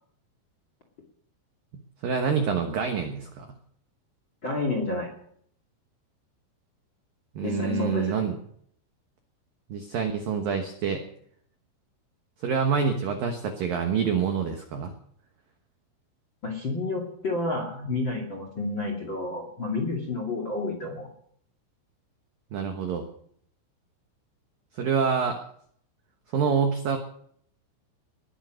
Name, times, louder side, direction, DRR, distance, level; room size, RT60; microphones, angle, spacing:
voice 1, 2.0-3.5 7.4-8.4 9.7-11.0 12.4-14.9 22.5-23.1 24.8-25.4 26.3-27.0, right 6 dB, 75° right, 5 dB, 2.1 m, -26 dB
voice 2, 4.4-5.1 7.4-8.1 16.4-21.1, left 3 dB, 40° left, 3 dB, 1.8 m, -30 dB
20.0 x 9.4 x 6.5 m, 0.64 s
omnidirectional pair, 6.0 m